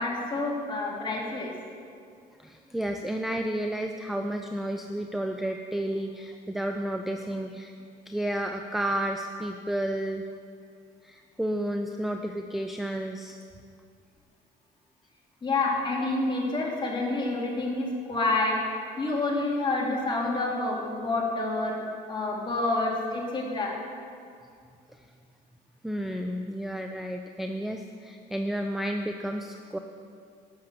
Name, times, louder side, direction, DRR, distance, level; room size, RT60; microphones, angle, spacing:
voice 1, 0.0-1.5 15.4-18.6 19.0-21.8 22.1-23.7, left 2 dB, 30° left, -3 dB, 2.7 m, -28 dB
voice 2, 2.4-7.7 8.1-10.2 11.0-13.4 24.9-25.1 25.8-29.8, right 1 dB, ahead, 4 dB, 0.5 m, -31 dB
11.5 x 6.7 x 7.6 m, 2.3 s
cardioid pair, 110°, 17 cm